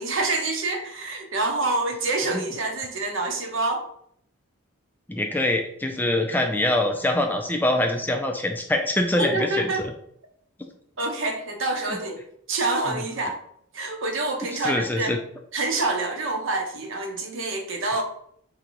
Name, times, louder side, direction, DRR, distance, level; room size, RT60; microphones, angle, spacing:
voice 1, 0.0-3.8 9.2-9.8 11.0-12.2 12.5-13.4 13.7-15.1 15.5-18.0, right 2 dB, 65° right, 3 dB, 1.0 m, -27 dB
voice 2, 5.1-9.9 11.9-12.0 12.9-13.0 14.5-15.2, left 1 dB, 10° left, 4 dB, 0.4 m, -24 dB
3.8 x 2.8 x 4.5 m, 0.68 s
head